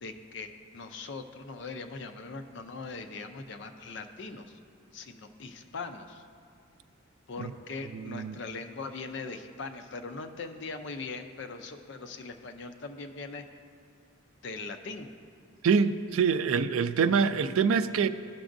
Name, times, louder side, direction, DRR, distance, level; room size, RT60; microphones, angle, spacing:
voice 1, 0.0-4.6 4.9-6.3 7.3-13.4 14.4-15.1, left 4 dB, 55° left, 0.5 m, -40 dB
voice 2, 7.9-8.4 15.6-18.1, right 6 dB, 80° right, 0.3 m, -25 dB
15.5 x 6.0 x 2.6 m
head